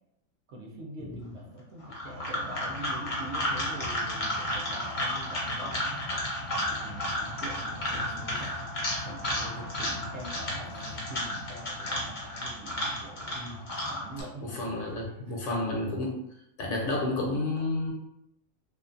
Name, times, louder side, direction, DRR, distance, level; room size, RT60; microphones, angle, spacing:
voice 1, 0.5-6.1 6.7-8.6 8.9-13.4 13.9-15.0 15.3-15.4, right 1 dB, 65° right, -2 dB, 0.7 m, -44 dB
voice 2, 1.0-1.3 7.9-8.1 13.3-13.6 14.4-16.2 16.6-17.9, left 2 dB, 70° left, -1 dB, 0.9 m, -31 dB
sound 1, 1.8-14.2, left 1 dB, 50° left, 0.6 m, -33 dB
2.5 x 2.3 x 2.5 m, 0.79 s
omnidirectional pair, 1.5 m